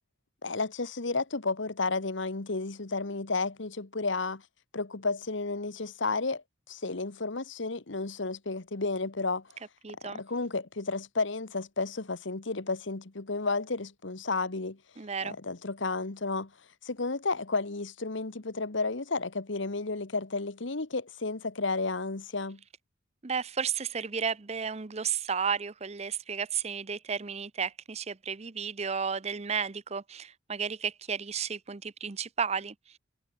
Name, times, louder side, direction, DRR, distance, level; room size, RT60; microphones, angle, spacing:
voice 1, 0.4-4.4 4.7-9.6 10.1-14.8 15.2-16.5 16.8-22.6, left 3 dB, 65° left, 1.3 m, -32 dB
voice 2, 9.8-10.2 15.0-15.3 23.2-33.0, right 6 dB, 30° right, 0.6 m, -33 dB
head